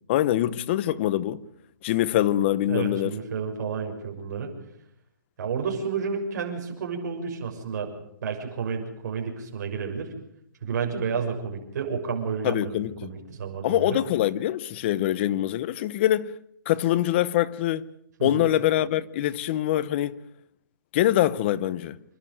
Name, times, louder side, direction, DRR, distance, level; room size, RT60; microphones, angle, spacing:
voice 1, 0.1-1.4 1.8-3.2 12.4-13.1 13.6-16.3 16.7-17.9 18.2-20.2 20.9-22.0, left 13 dB, 30° left, 0.8 m, -24 dB
voice 2, 2.7-4.5 5.4-7.9 8.2-10.1 10.6-14.0 18.2-18.5, right 6 dB, 55° right, 6.5 m, -31 dB
27.5 x 12.0 x 9.3 m
hypercardioid pair, 160°, 11 cm